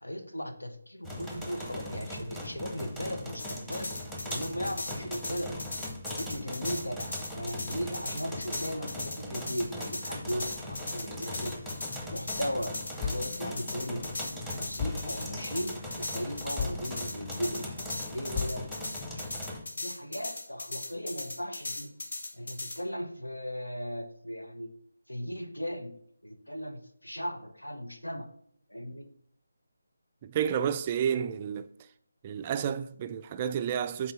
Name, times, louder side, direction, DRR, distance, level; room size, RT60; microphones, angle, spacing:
voice 1, 0.0-5.6 6.1-11.6 12.1-14.1 14.5-18.7 19.1-19.4 19.7-21.9 22.3-24.7 25.1-26.0 26.2-28.3 28.7-29.1, equal, 85° left, 1.1 m, -37 dB
sound 1, 1.0-19.6, left 1 dB, 5° left, 0.9 m, -40 dB
sound 2, 3.4-22.8, left 2 dB, 55° left, 1.3 m, -38 dB
sound 3, 12.1-12.7 13.0-17.5 17.9-18.9, left 5 dB, 25° left, 1.8 m, -38 dB
voice 2, 30.2-31.7 32.2-34.1, right 8 dB, 25° right, 0.3 m, -30 dB
6.9 x 4.2 x 5.5 m
figure-of-eight pair, 155°, 0 cm